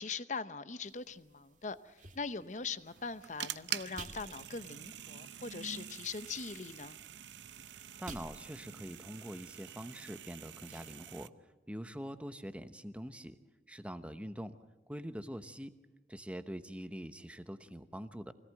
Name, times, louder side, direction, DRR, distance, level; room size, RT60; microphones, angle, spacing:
voice 1, 0.0-7.0, left 4 dB, 45° left, 13 dB, 0.8 m, -41 dB
sound 1, 0.8-10.9, right 3 dB, 45° right, 2.1 m, -56 dB
sound 2, 2.9-11.3, right 10 dB, 90° right, 0.6 m, -46 dB
voice 2, 7.6-11.3 11.7-13.4 13.7-14.6 14.9-15.7 16.1-18.3, equal, 5° right, 10 dB, 1.0 m, -44 dB
24.5 x 17.5 x 7.8 m, 1.2 s
head